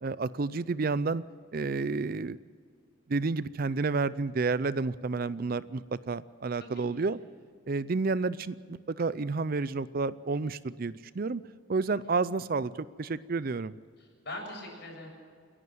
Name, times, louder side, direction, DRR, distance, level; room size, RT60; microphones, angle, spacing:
voice 1, 0.0-1.2 1.5-2.4 3.1-7.2 7.7-11.4 11.7-13.7, right 4 dB, 45° right, 17 dB, 0.5 m, -30 dB
voice 2, 14.0-15.1, left 1 dB, 55° left, 0 dB, 7.4 m, -42 dB
29.5 x 11.0 x 7.8 m, 2.1 s
head